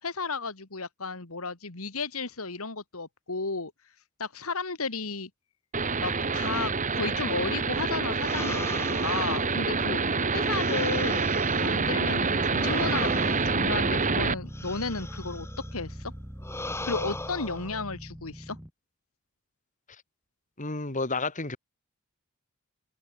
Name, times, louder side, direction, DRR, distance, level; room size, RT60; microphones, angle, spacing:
voice 1, 0.0-3.7 4.2-5.3 6.0-11.3 11.6-16.1 16.8-18.6, left 4 dB, 70° left, 2.4 m, -33 dB
sound 1, 5.7-14.3, right 4 dB, 35° right, 1.8 m, -27 dB
sound 2, 8.2-11.8 12.4-15.8 16.4-17.8, left 2 dB, 10° left, 1.6 m, -40 dB
sound 3, 12.9-18.7, equal, 5° right, 3.8 m, -41 dB
voice 2, 20.6-21.6, left 3 dB, 35° left, 2.7 m, -30 dB
head